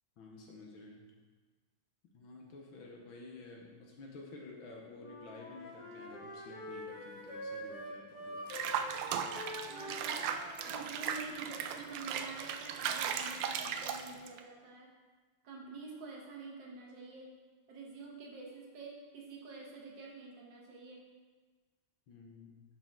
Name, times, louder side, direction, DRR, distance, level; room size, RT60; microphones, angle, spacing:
voice 1, 0.2-1.1 2.1-8.5 22.1-22.6, left 3 dB, 70° left, 0 dB, 1.6 m, -51 dB
Wind instrument woodwind instrument, 5.0-11.3, equal, 50° left, 2.1 m, -46 dB
Water / Bathtub (filling or washing), 8.5-14.4, right 8 dB, 75° right, 1.1 m, -37 dB
voice 2, 9.7-10.2 10.6-14.9 15.4-17.3 17.7-21.0, right 3 dB, 60° right, -2 dB, 1.9 m, -48 dB
10.5 x 5.0 x 3.6 m, 1.4 s
omnidirectional pair, 2.4 m